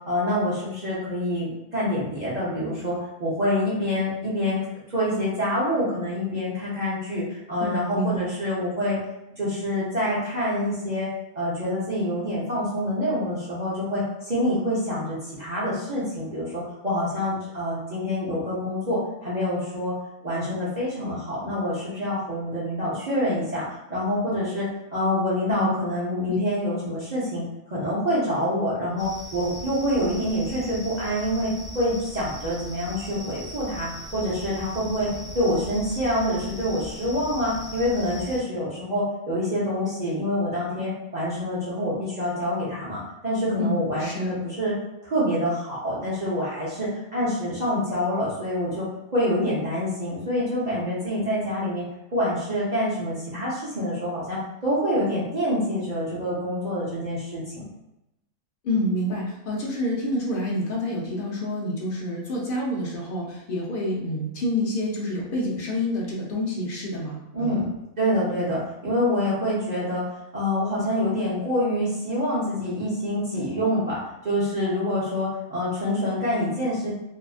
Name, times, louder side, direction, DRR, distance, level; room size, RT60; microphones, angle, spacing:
voice 1, 0.0-4.6 4.9-9.0 9.4-11.1 11.3-19.9 20.2-23.6 23.9-44.7 45.0-48.9 49.1-51.8 52.1-57.6 67.3-67.7 68.0-70.1 70.3-76.9, left 1 dB, 45° right, -9 dB, 0.5 m, -26 dB
voice 2, 7.6-8.3 25.5-25.7 26.3-26.4 43.6-44.3 58.6-67.6, left 1 dB, 80° left, -3 dB, 0.4 m, -28 dB
sound 1, 29.0-38.4, equal, ahead, 0.9 m, -39 dB
2.7 x 2.4 x 2.4 m, 0.88 s
omnidirectional pair, 1.6 m